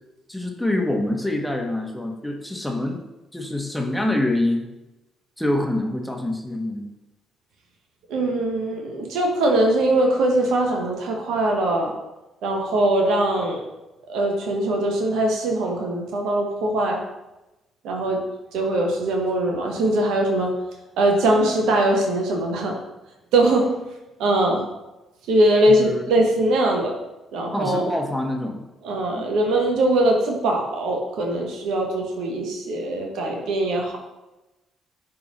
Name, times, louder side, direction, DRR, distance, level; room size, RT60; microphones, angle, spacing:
voice 1, 0.3-3.0 3.3-4.7 5.4-6.9 25.7-26.1 27.5-28.7 29.1-29.3, left 1 dB, 5° left, 2 dB, 1.4 m, -25 dB
voice 2, 8.1-11.9 12.4-13.6 14.1-17.0 17.8-18.2 18.5-20.5 21.0-22.8 23.3-23.7 24.2-24.6 25.3-26.9 27.3-27.8 28.8-34.0, right 1 dB, 70° right, 1 dB, 1.1 m, -21 dB
10.5 x 3.7 x 3.1 m, 1.0 s
hypercardioid pair, 45°, 0 cm